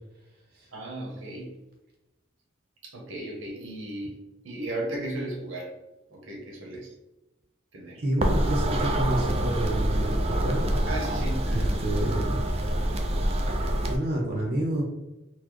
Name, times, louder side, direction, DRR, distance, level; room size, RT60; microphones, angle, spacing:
voice 1, 0.7-1.5 2.8-4.2 4.4-5.8 6.1-6.9 7.7-8.0 10.9-11.7, right 1 dB, 85° right, 0 dB, 1.0 m, -35 dB
voice 2, 8.0-10.7 11.5-12.4 13.8-14.8, right 1 dB, 50° right, -2 dB, 0.8 m, -29 dB
sound 1, 8.2-14.0, right 1 dB, 30° right, 0.3 m, -26 dB
4.0 x 2.2 x 3.0 m, 0.97 s
head